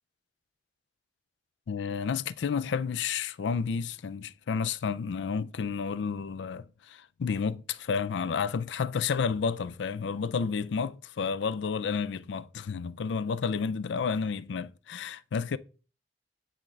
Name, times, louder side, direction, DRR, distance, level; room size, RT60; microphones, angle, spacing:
voice 1, 1.7-15.6, left 5 dB, 90° left, 0.4 m, -31 dB
9.9 x 3.7 x 3.2 m
head